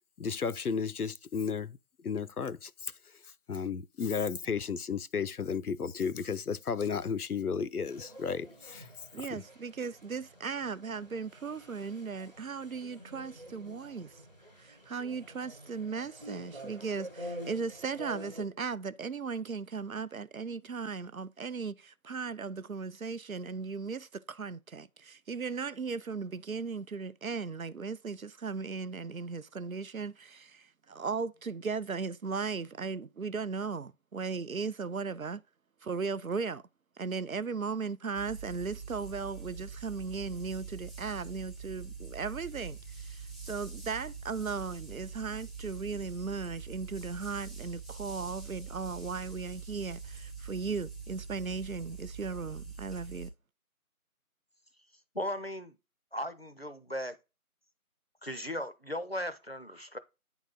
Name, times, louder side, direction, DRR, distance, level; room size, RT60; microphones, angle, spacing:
voice 1, 0.2-1.8 2.0-2.9 3.5-8.9 9.3-9.4, left 6 dB, 80° left, 0.7 m, -33 dB
sound 1, 7.9-18.4, equal, 30° right, 1.2 m, -48 dB
voice 2, 9.1-14.2 14.6-35.4 35.8-36.6 37.0-53.3, right 5 dB, 70° right, 0.6 m, -37 dB
sound 2, 38.1-53.3, right 5 dB, ahead, 0.6 m, -44 dB
voice 3, 55.1-55.8 56.1-57.2 58.2-60.0, equal, 45° left, 0.6 m, -37 dB
9.3 x 3.9 x 3.7 m
figure-of-eight pair, 170°, 44 cm